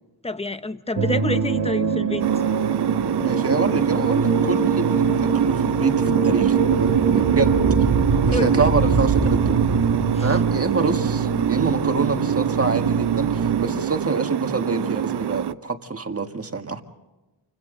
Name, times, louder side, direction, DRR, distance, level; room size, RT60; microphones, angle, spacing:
voice 1, 0.2-2.3 8.3-8.6 10.1-10.3, left 2 dB, 15° left, 10 dB, 0.9 m, -28 dB
sound 1, 1.0-13.7, right 5 dB, 90° right, 2.1 m, -22 dB
sound 2, 2.2-15.5, right 10 dB, 60° right, 0.6 m, -26 dB
voice 2, 3.2-5.9 6.2-7.5 8.3-9.7 10.2-16.8, right 4 dB, 30° right, 5 dB, 1.7 m, -26 dB
29.0 x 25.0 x 3.9 m, 1.1 s
wide cardioid pair, 110°, 44 cm